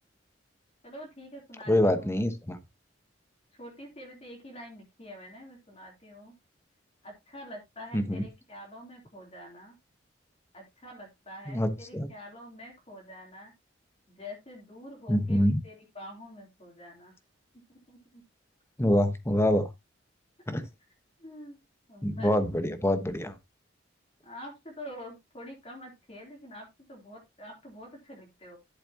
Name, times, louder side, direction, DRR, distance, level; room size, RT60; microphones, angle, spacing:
voice 1, 0.8-2.1 3.5-6.3 7.0-9.8 10.5-13.5 14.1-17.1 17.7-18.2 21.2-21.6 21.9-22.3 24.2-28.6, left 1 dB, 35° left, 3.1 m, -46 dB
voice 2, 1.7-2.6 7.9-8.2 11.5-12.1 15.1-15.6 18.8-19.7 20.5-20.7 22.0-23.3, left 1 dB, 15° left, 1.1 m, -25 dB
11.5 x 7.3 x 2.8 m
head